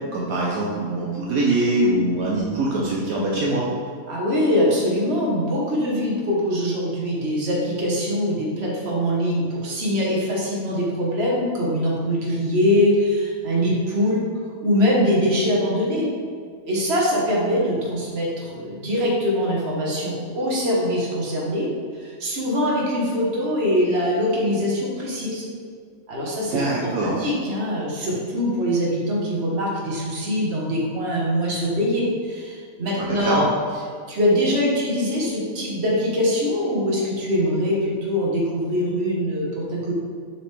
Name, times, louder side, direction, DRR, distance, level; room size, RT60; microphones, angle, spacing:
voice 1, 0.1-3.6 26.5-27.2 33.0-33.5, right 2 dB, 75° right, -4 dB, 1.2 m, -23 dB
voice 2, 4.1-14.2 14.6-16.1 16.6-25.5 26.1-26.9 27.2-33.5 34.1-39.9, equal, 45° right, -4 dB, 1.5 m, -23 dB
6.9 x 4.5 x 3.3 m, 2.1 s
omnidirectional pair, 1.5 m